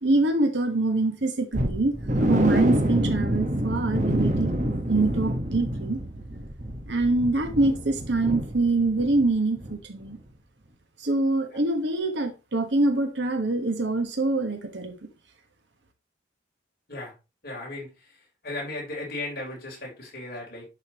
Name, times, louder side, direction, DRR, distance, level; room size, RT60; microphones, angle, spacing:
voice 1, 0.0-1.9 2.2-4.5 4.8-6.0 6.9-10.2 11.0-15.0, right 2 dB, 70° right, 1.3 m, -25 dB
sound 1, 1.5-9.3 9.6-9.8 10.2-10.3, right 1 dB, 40° right, 1.2 m, -27 dB
voice 2, 17.4-18.2 18.4-20.7, left 2 dB, 50° left, 3.9 m, -36 dB
10.5 x 5.5 x 3.0 m
head